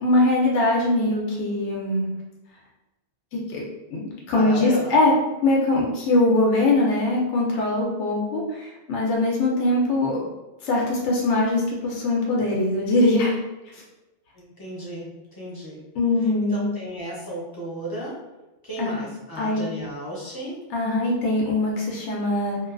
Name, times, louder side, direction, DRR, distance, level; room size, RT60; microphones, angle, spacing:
voice 1, 0.0-2.1 3.3-3.6 3.9-5.1 5.4-10.1 10.6-13.3 16.0-16.6 18.8-19.0 19.4-19.6 20.7-22.6, left 2 dB, 85° left, -3 dB, 0.9 m, -22 dB
voice 2, 4.3-5.0 14.3-15.8 16.2-18.2 18.6-20.6, right 1 dB, 25° left, -6 dB, 0.5 m, -34 dB
2.4 x 2.2 x 2.3 m, 1.1 s
omnidirectional pair, 1.2 m